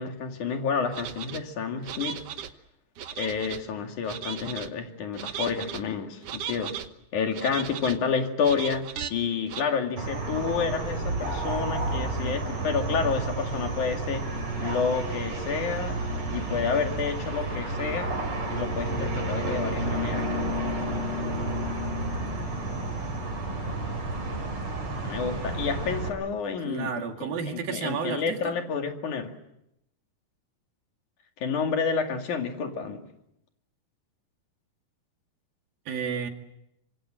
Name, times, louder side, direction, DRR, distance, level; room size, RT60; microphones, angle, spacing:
voice 1, 0.0-2.2 3.1-6.8 7.1-14.2 14.6-16.0 16.3-18.2 18.5-20.3 25.0-29.3 31.4-33.0, left 6 dB, 60° left, 4 dB, 3.5 m, -29 dB
sound 1, 0.9-1.4 1.8-2.5 3.0-3.6 4.1-4.7 5.1-5.8 6.2-6.9 7.3-8.0 8.4-9.1 9.5-9.6, right 8 dB, 60° right, 1.7 m, -36 dB
sound 2, 10.0-26.1, right 2 dB, 40° right, 5.4 m, -31 dB
voice 2, 26.6-28.5 35.9-36.3, right 7 dB, 90° right, 4 dB, 4.1 m, -32 dB
26.5 x 24.0 x 7.7 m, 0.84 s
omnidirectional pair, 4.0 m